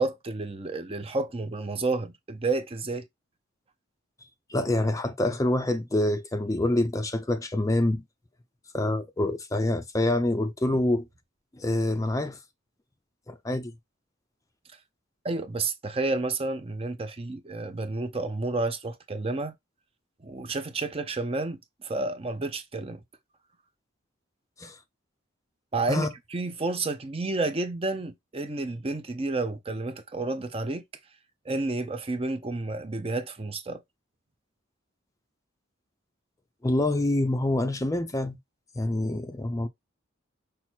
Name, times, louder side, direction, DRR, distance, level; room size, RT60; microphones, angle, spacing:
voice 1, 0.0-3.1 15.2-19.5 20.2-23.0 25.7-30.8 31.5-33.8, right 3 dB, 30° right, 0.6 m, -30 dB
voice 2, 4.5-8.0 8.7-11.1 11.5-12.4 13.3-13.7 24.6-24.8 25.9-26.1 36.6-38.4 38.8-39.7, left 1 dB, 15° left, 0.5 m, -26 dB
5.7 x 2.0 x 4.4 m
head